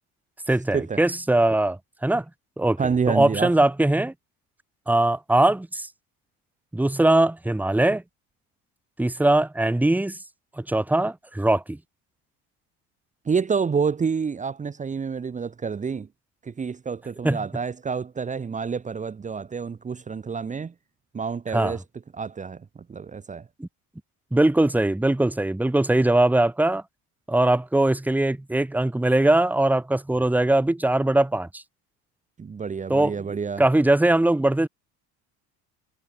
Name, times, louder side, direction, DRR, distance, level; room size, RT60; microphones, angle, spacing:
voice 1, 0.5-2.3 2.6-2.8 3.1-4.1 4.9-5.9 6.7-8.0 9.0-10.2 10.6-11.8 17.2-17.4 21.5-21.8 23.6-23.7 24.3-26.8 27.3-31.6 32.9-33.2 33.6-34.7, right 1 dB, 5° right, 1.9 m, -21 dB
voice 2, 2.8-3.5 13.2-16.1 16.4-20.7 21.1-21.8 22.1-23.5 32.4-33.6, right 5 dB, 20° right, 1.6 m, -28 dB
cardioid pair, 115°, 33 cm